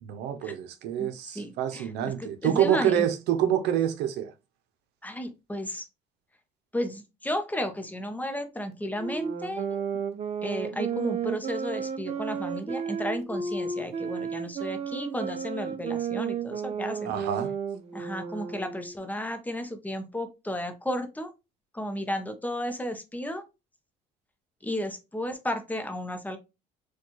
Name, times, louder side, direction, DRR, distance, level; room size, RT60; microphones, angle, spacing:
voice 1, 0.0-4.3 17.0-17.5, right 10 dB, 80° right, 0.6 m, -27 dB
voice 2, 1.3-3.1 5.0-5.9 6.7-9.8 10.4-17.1 17.9-21.3 21.7-23.5 24.6-26.4, equal, 10° left, 0.6 m, -33 dB
sound 1, 9.0-19.0, right 6 dB, 40° right, 0.6 m, -33 dB
4.2 x 2.3 x 2.9 m
cardioid pair, 110°, 17 cm